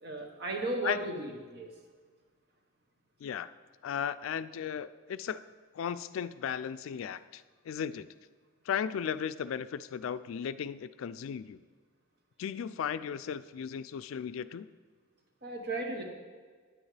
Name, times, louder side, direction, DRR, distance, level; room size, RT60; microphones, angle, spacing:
voice 1, 0.0-1.7 15.4-16.0, right 2 dB, 50° right, 2 dB, 1.2 m, -35 dB
voice 2, 3.8-5.4 5.7-8.1 8.7-11.6 12.4-14.7, left 8 dB, 85° left, 14 dB, 0.3 m, -36 dB
8.9 x 8.7 x 3.3 m, 1.5 s
head